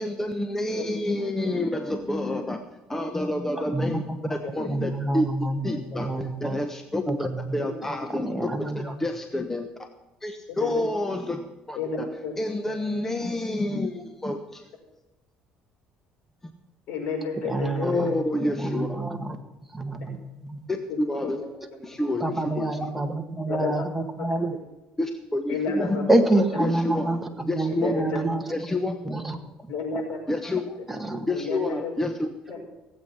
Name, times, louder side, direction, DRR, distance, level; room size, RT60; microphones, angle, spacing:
voice 1, 0.0-2.6 2.9-5.3 5.6-9.7 10.2-11.4 11.7-12.1 12.4-14.7 16.4-16.5 17.8-19.0 20.7-21.4 21.8-22.7 25.0-26.1 26.6-27.9 28.5-29.0 30.3-30.7 31.3-32.3, left 1 dB, 10° left, 5 dB, 1.1 m, -29 dB
voice 2, 3.7-4.3 4.7-6.6 7.1-7.6 8.1-8.9 17.4-18.1 18.6-19.4 19.7-20.6 22.2-24.5 26.1-28.4 29.1-29.4 29.6-29.7 30.9-31.3, right 2 dB, 5° right, 3 dB, 1.7 m, -27 dB
voice 3, 16.9-18.1 18.6-18.7 21.2-21.5 23.5-23.7 25.5-26.0 26.5-26.6 27.7-28.2 29.7-30.2 31.3-31.9 32.5-32.6, left 4 dB, 70° left, -1 dB, 5.6 m, -31 dB
17.0 x 8.4 x 5.8 m, 1.0 s
cardioid pair, 110°, 3 cm